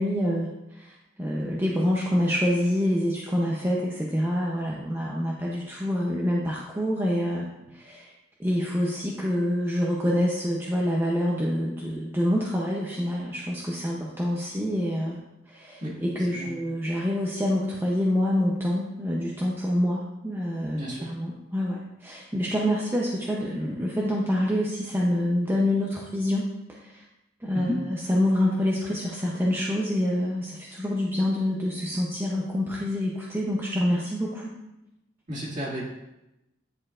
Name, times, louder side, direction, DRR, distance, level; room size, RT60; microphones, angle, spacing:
voice 1, 0.0-7.4 7.7-8.1 8.4-15.2 15.5-26.5 26.7-27.0 27.4-34.5, left 1 dB, 10° right, -4 dB, 0.6 m, -26 dB
voice 2, 15.8-16.5 20.7-21.1 27.5-27.8 35.3-35.8, equal, 40° right, -5 dB, 1.9 m, -33 dB
9.9 x 4.4 x 2.4 m, 0.92 s
head